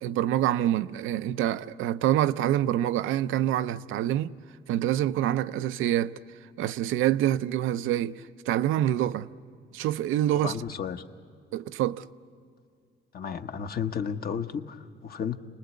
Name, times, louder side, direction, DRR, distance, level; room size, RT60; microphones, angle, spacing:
voice 1, 0.0-4.3 4.7-6.2 6.6-9.3 9.7-10.5 11.5-12.1, right 12 dB, 85° right, 0.5 m, -26 dB
voice 2, 10.4-11.0 13.1-15.4, left 7 dB, 50° left, 1.0 m, -33 dB
28.0 x 20.0 x 8.2 m
cardioid pair, 90°, 20 cm